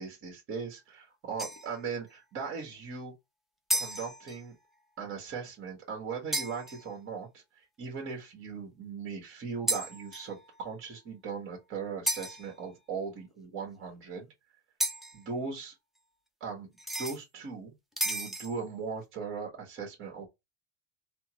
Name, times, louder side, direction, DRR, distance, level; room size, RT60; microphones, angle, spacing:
voice 1, 0.0-3.1 3.7-4.5 5.0-14.3 15.1-15.7 16.4-16.7 17.0-17.7 18.0-20.3, right 5 dB, 40° right, 1.5 m, -39 dB
sound 1, 1.4-1.8 3.7-4.4 6.3-6.9 9.7-10.4 12.1-12.5 14.8-15.2 16.8-17.2 18.0-18.6, right 1 dB, ahead, 0.6 m, -33 dB
3.4 x 2.1 x 3.0 m
supercardioid pair, 100°, 33 cm